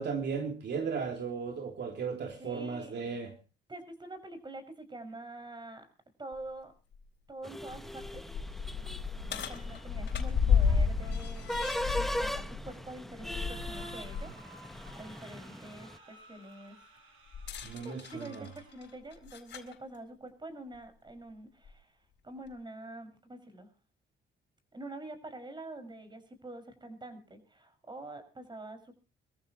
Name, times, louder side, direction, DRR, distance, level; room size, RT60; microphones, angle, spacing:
voice 1, 0.0-3.3 17.6-18.5, right 5 dB, 60° right, 3.2 m, -36 dB
voice 2, 2.4-3.0 3.7-5.8 6.2-6.7 7.3-8.2 9.3-11.4 12.0-14.3 14.9-16.7 17.8-21.9 22.2-23.7 24.7-28.9, right 2 dB, 20° right, 5.7 m, -46 dB
sound 1, 6.3-6.4 6.9-7.0 7.6-14.3 14.7-14.9 17.3-19.7 20.7-20.8 21.6-21.7, left 6 dB, 60° left, 3.9 m, -32 dB
sound 2, 7.4-16.0, equal, ahead, 1.1 m, -40 dB
sound 3, 13.2-18.9, right 1 dB, 90° right, 5.6 m, -56 dB
25.0 x 14.0 x 3.0 m
cardioid pair, 90°, 20 cm